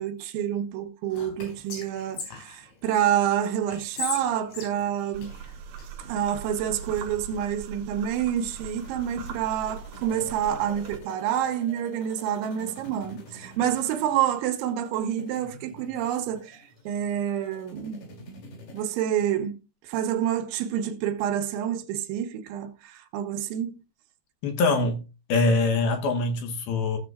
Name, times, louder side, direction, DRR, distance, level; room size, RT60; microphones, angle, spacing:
voice 1, 0.0-5.3 6.0-18.0 18.7-19.6 19.8-23.7, right 10 dB, 85° right, 3.4 m, -28 dB
Whispering, 1.1-3.1 3.7-5.9, left 3 dB, 90° left, 6.5 m, -37 dB
sound 1, 5.1-11.0, right 6 dB, 65° right, 2.4 m, -41 dB
sound 2, 8.2-18.8, left 1 dB, 55° left, 4.0 m, -48 dB
voice 2, 24.4-25.0 25.3-27.0, left 3 dB, 70° left, 2.5 m, -23 dB
17.0 x 7.4 x 2.4 m
omnidirectional pair, 5.3 m